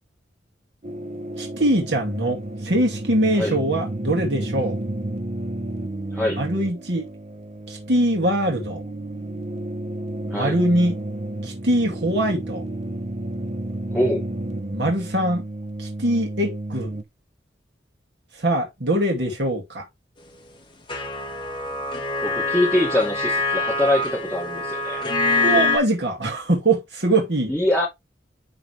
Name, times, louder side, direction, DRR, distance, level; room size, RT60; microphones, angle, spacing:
sound 1, 0.8-17.0, right 1 dB, 40° right, 0.9 m, -32 dB
voice 1, 1.4-4.8 6.4-7.1 7.7-8.8 10.3-11.0 11.4-12.6 14.7-15.4 15.8-16.9 18.3-19.8 25.4-27.5, right 1 dB, 70° right, 2.5 m, -22 dB
voice 2, 13.9-14.2 22.2-25.0 27.5-27.9, left 1 dB, 5° left, 2.5 m, -23 dB
sound 2, 20.9-25.8, left 2 dB, 30° left, 1.7 m, -24 dB
11.0 x 4.0 x 3.4 m
head